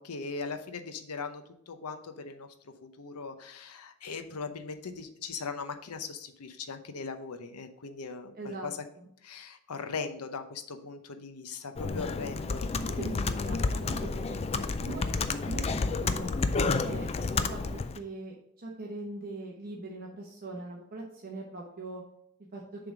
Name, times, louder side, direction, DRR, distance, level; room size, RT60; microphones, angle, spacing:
voice 1, 0.0-2.5 2.8-8.8 9.2-12.7, left 4 dB, 85° left, 8 dB, 0.8 m, -39 dB
voice 2, 8.4-9.1 13.0-15.1 15.5-16.3 16.8-17.6 17.9-22.0 22.5-22.6, right 2 dB, 40° right, -2 dB, 1.0 m, -41 dB
Computer keyboard, 11.8-18.0, left 4 dB, 25° left, 0.3 m, -30 dB
7.0 x 3.5 x 5.9 m, 0.73 s
head